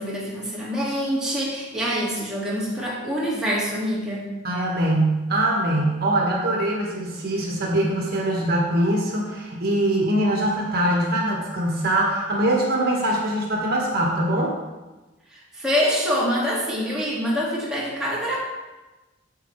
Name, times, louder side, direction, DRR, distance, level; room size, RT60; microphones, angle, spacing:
voice 1, 0.0-4.3 15.3-18.4, equal, 5° right, -6 dB, 1.9 m, -25 dB
voice 2, 4.4-14.6, right 1 dB, 55° right, -1 dB, 1.4 m, -23 dB
9.2 x 7.4 x 3.2 m, 1.1 s
head